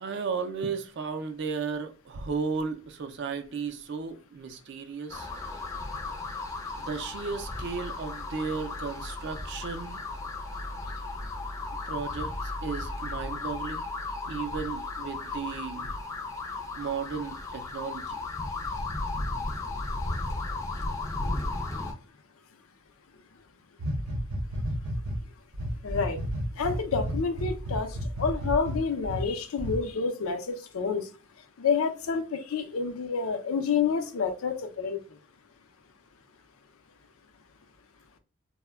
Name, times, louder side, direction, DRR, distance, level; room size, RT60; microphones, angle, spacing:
voice 1, 0.0-5.3 6.8-10.0 11.9-13.8 14.3-15.9 16.8-18.2, right 5 dB, 55° right, 0.4 m, -34 dB
sound 1, 5.1-21.9, left 2 dB, 15° left, 0.4 m, -35 dB
sound 2, 23.8-25.2 25.5-29.2 29.6-29.8, equal, 85° right, 0.7 m, -31 dB
voice 2, 25.8-26.2 26.6-27.9 28.2-31.1 31.6-35.0, left 5 dB, 80° left, 0.5 m, -28 dB
2.1 x 2.1 x 3.3 m
head